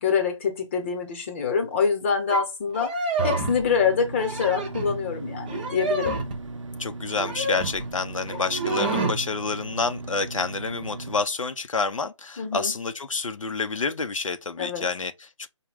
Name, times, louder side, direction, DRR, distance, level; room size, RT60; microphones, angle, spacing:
voice 1, 0.0-3.0 3.2-6.2 12.4-12.7 14.6-14.9, left 6 dB, 25° left, 0.9 m, -25 dB
sound 1, 2.3-2.4 2.7-3.7 4.1-5.0 5.5-6.4 7.1-7.9 8.3-9.2, right 2 dB, 15° right, 0.5 m, -28 dB
sound 2, 3.6-11.2, right 2 dB, 70° right, 0.6 m, -37 dB
voice 2, 6.8-15.5, left 4 dB, 90° left, 0.6 m, -28 dB
4.9 x 2.2 x 3.4 m
figure-of-eight pair, 160°, 16 cm